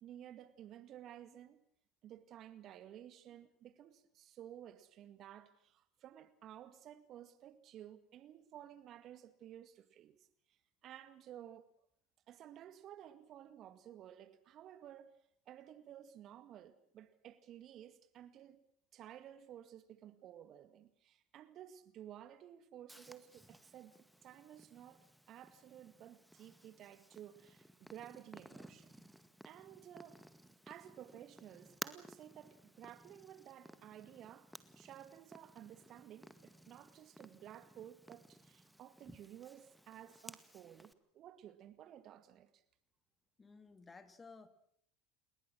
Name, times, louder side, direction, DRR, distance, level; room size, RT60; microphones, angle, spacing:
voice 1, 0.0-1.6 2.0-11.7 12.3-15.1 15.5-18.6 18.9-29.0 29.4-30.2 30.7-34.5 34.8-42.6, right 11 dB, 45° right, 2.1 m, -54 dB
Purr, 22.9-40.9, equal, ahead, 1.9 m, -56 dB
voice 2, 43.4-44.5, left 4 dB, 20° left, 2.8 m, -56 dB
29.0 x 21.0 x 6.4 m
hypercardioid pair, 75°, 0 cm